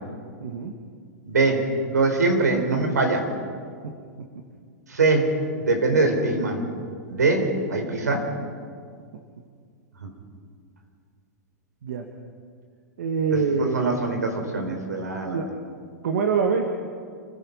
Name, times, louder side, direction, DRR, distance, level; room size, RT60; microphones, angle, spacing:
voice 1, 0.4-0.8 3.8-4.4 11.8-12.1 13.0-13.9 15.3-15.6 16.0-16.7, right 5 dB, 75° right, 3 dB, 2.0 m, -25 dB
voice 2, 1.2-1.6 1.9-3.3 4.9-6.6 7.1-8.3 10.0-10.1 13.7-15.4, right 3 dB, 90° right, 3 dB, 4.7 m, -23 dB
29.0 x 16.0 x 5.6 m, 2.1 s
hypercardioid pair, 110°, 9 cm